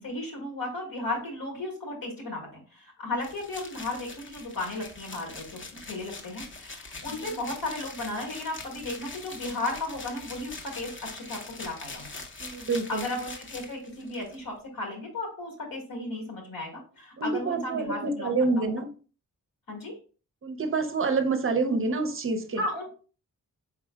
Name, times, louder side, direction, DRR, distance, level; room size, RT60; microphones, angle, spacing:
voice 1, 0.0-12.1 12.5-18.7 19.7-19.9 22.6-22.9, left 2 dB, 85° left, 1.6 m, -35 dB
sound 1, 3.2-14.4, left 3 dB, 35° left, 0.6 m, -43 dB
voice 2, 12.4-13.1 17.2-18.9 20.4-22.6, right 3 dB, 40° right, 0.5 m, -27 dB
4.5 x 3.7 x 2.2 m
wide cardioid pair, 170°, 34 cm